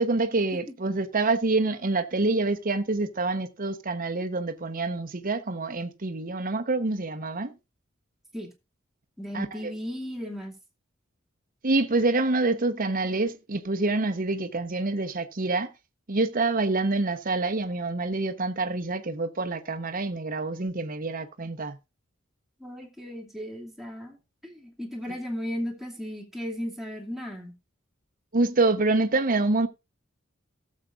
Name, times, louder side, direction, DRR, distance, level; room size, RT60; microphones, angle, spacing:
voice 1, 0.0-7.5 9.3-9.7 11.6-15.7 16.1-21.8 28.3-29.7, right 3 dB, 45° right, 1.0 m, -26 dB
voice 2, 9.2-10.5 22.6-24.2 24.4-27.6, equal, ahead, 2.5 m, -35 dB
17.5 x 7.5 x 2.5 m
head